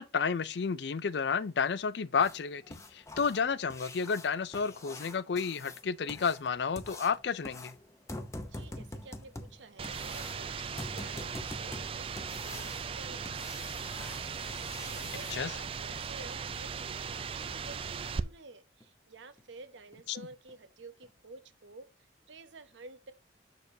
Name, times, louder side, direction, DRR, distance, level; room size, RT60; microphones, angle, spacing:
voice 1, 0.0-7.7 15.3-15.5 20.1-20.3, left 6 dB, 65° left, 0.4 m, -31 dB
sound 1, 2.2-15.4 17.7-17.8 18.2-18.3 18.8-18.9 19.4-19.5 19.9-20.1 20.5-20.6 21.0-21.1, left 2 dB, 15° left, 0.7 m, -46 dB
voice 2, 8.4-13.8 14.5-21.9 22.3-23.1, right 3 dB, 85° right, 0.8 m, -51 dB
sound 2, 9.8-18.2, right 6 dB, 30° right, 0.3 m, -38 dB
6.7 x 6.5 x 2.7 m
head